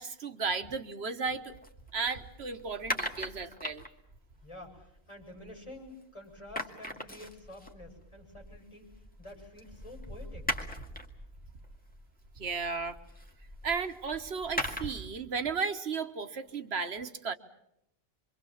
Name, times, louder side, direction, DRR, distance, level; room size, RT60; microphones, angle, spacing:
voice 1, 0.0-1.5 1.9-3.8 12.4-13.0 13.6-17.3, right 5 dB, 85° right, 8 dB, 1.5 m, -34 dB
sound 1, 1.4-6.0 6.3-15.2, equal, 10° left, 2.2 m, -41 dB
voice 2, 4.4-10.5, left 1 dB, 30° left, 1 dB, 7.3 m, -49 dB
26.0 x 25.0 x 7.3 m, 0.79 s
omnidirectional pair, 1.0 m